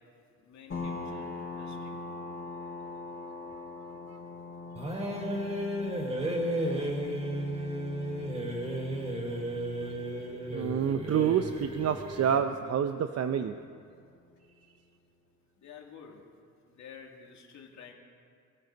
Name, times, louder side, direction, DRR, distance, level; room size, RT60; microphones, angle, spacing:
voice 1, 0.4-2.0 15.6-16.2 16.8-17.9, left 6 dB, 70° left, 0 dB, 2.8 m, -50 dB
sound 1, 0.7-14.0, left 3 dB, 45° left, 4.7 m, -43 dB
sound 2, 4.8-12.4, right 1 dB, 20° right, 4.3 m, -34 dB
voice 2, 9.6-13.5, right 8 dB, 55° right, 8 dB, 0.7 m, -29 dB
22.5 x 14.0 x 4.1 m, 2.3 s
cardioid pair, 90°, 30 cm